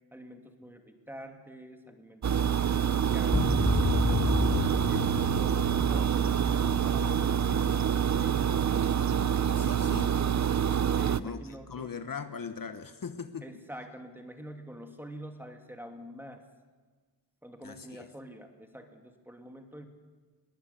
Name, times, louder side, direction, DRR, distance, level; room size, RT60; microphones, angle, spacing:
voice 1, 0.1-5.1 10.9-12.0 13.4-16.4 17.4-19.9, equal, 5° right, 5 dB, 2.6 m, -47 dB
sound 1, 2.2-11.2, right 8 dB, 45° right, 0.7 m, -26 dB
sound 2, 3.3-8.7, left 3 dB, 20° left, 1.1 m, -31 dB
voice 2, 9.5-10.2 11.2-13.5 17.6-18.1, left 6 dB, 55° left, 10 dB, 1.2 m, -40 dB
21.5 x 18.5 x 8.3 m, 1.4 s
wide cardioid pair, 105°, 40 cm